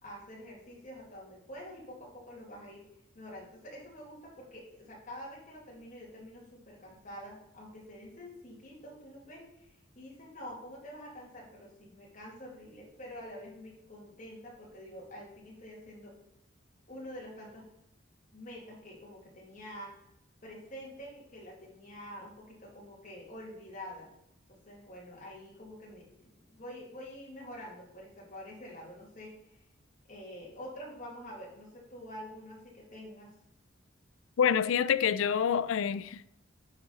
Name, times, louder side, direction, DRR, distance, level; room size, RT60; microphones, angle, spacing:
voice 1, 0.0-2.8 3.1-16.2 16.9-17.6 18.3-19.9 20.4-24.1 24.5-29.5 30.1-33.3, equal, 40° left, 2.6 m, -47 dB
voice 2, 34.4-36.3, left 8 dB, 85° left, 0.4 m, -27 dB
10.0 x 4.9 x 4.1 m
head